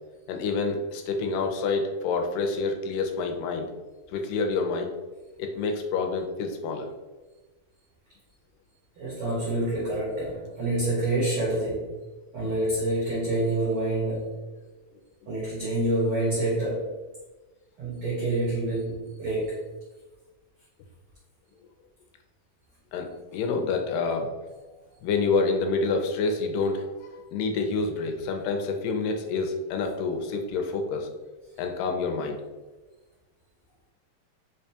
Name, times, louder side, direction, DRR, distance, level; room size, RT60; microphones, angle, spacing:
voice 1, 0.3-3.7 4.1-4.9 5.4-6.9 22.9-24.3 25.0-31.1 31.6-32.4, left 4 dB, 85° left, 4 dB, 2.1 m, -28 dB
voice 2, 9.0-11.9 12.3-14.4 15.3-17.0 17.8-19.6, right 1 dB, 90° right, -6 dB, 1.2 m, -27 dB
5.2 x 2.2 x 2.7 m, 1.2 s
omnidirectional pair, 3.7 m